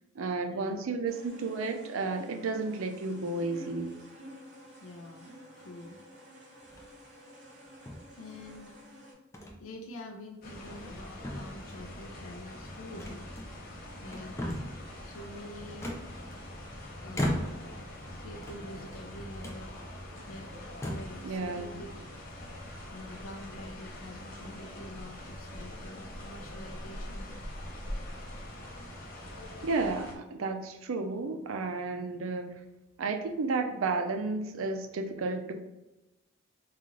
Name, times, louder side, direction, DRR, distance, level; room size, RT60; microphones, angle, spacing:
voice 1, 0.2-4.0 21.2-21.8 29.6-32.6 33.0-35.5, right 3 dB, 75° right, 5 dB, 0.4 m, -32 dB
sound 1, 1.1-9.1, equal, 55° right, 0.9 m, -51 dB
voice 2, 4.8-6.0 6.8-6.9 8.1-8.8 9.4-13.3 14.0-14.4 15.0-16.0 17.0-17.6 18.2-19.7 20.3-20.5 20.9-21.9 22.9-27.4, left 1 dB, 80° left, 3 dB, 0.5 m, -46 dB
sound 2, 6.6-7.1 7.9-8.6 9.3-9.6 10.0-10.1 10.6-11.0 11.2-11.9 13.0-13.7 14.1-14.8 15.8-16.6 17.1-17.8 18.3-19.0 19.4-19.6 20.2-20.3 20.7-21.2, left 1 dB, 15° left, 0.3 m, -37 dB
sound 3, 10.4-30.2, left 1 dB, 40° left, 0.7 m, -43 dB
3.7 x 2.4 x 3.0 m, 1.0 s
head